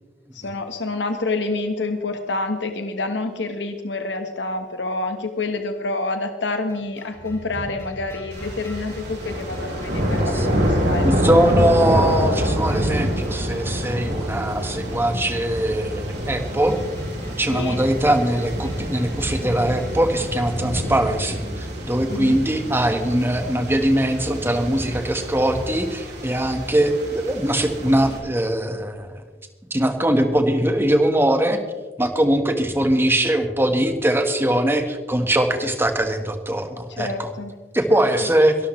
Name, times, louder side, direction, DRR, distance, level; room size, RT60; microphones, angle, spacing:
voice 1, 0.3-11.2 17.4-17.8 22.1-22.4 36.9-37.5 37.9-38.0, left 2 dB, 80° left, 6 dB, 1.3 m, -28 dB
sound 1, 6.7-21.0, equal, 20° left, 6.1 m, -38 dB
sound 2, 8.3-28.2, equal, 65° right, 4.7 m, -26 dB
voice 2, 11.0-16.8 17.4-29.2 29.7-31.6 32.0-37.3 37.7-38.6, right 1 dB, 15° right, 6 dB, 1.4 m, -21 dB
23.5 x 12.5 x 3.2 m, 1.2 s
head